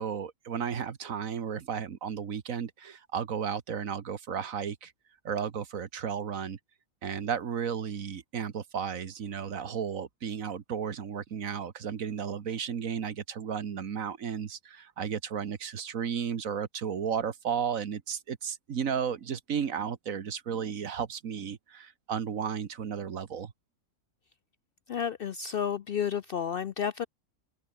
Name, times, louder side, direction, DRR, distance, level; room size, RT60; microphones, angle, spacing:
voice 1, 0.0-4.9 5.2-6.6 7.0-23.5, right 7 dB, 75° right, 1.7 m, -34 dB
voice 2, 24.9-27.1, left 8 dB, 60° left, 0.6 m, -31 dB
open air
omnidirectional pair, 1.5 m